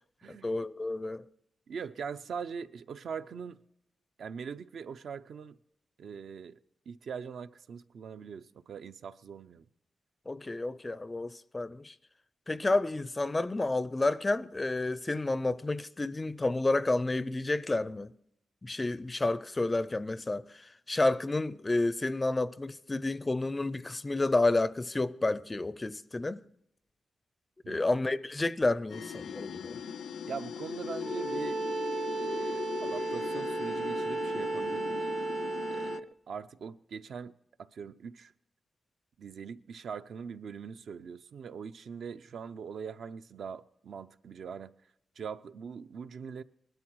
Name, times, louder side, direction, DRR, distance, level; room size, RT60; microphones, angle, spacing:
voice 1, 0.3-1.2 10.3-11.9 12.5-18.1 18.6-26.4 27.7-29.8, left 2 dB, 20° left, 0.4 m, -30 dB
voice 2, 1.7-3.6 4.2-5.6 6.0-6.6 6.9-9.6 27.6-27.9 30.2-31.6 32.2-35.1 35.7-38.3 39.2-44.7 45.2-46.4, right 6 dB, 65° right, 0.6 m, -42 dB
sound 1, 28.9-36.0, left 7 dB, 80° left, 0.5 m, -39 dB
Bowed string instrument, 31.0-36.1, right 3 dB, 45° right, 1.0 m, -34 dB
20.0 x 12.5 x 4.6 m
wide cardioid pair, 160°, 0 cm